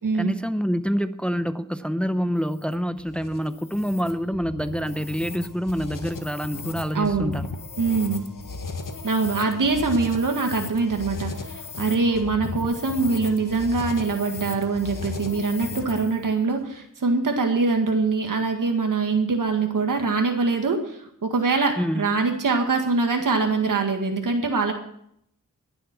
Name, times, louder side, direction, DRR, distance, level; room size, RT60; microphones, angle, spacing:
voice 1, 0.2-7.4 21.8-22.1, equal, 5° left, 11 dB, 0.7 m, -26 dB
sound 1, 2.4-16.2, left 3 dB, 80° left, 1.7 m, -36 dB
voice 2, 6.9-7.3 7.8-8.2 9.0-24.7, right 4 dB, 75° right, 3 dB, 1.9 m, -23 dB
21.0 x 7.8 x 5.9 m, 0.72 s
wide cardioid pair, 85°, 32 cm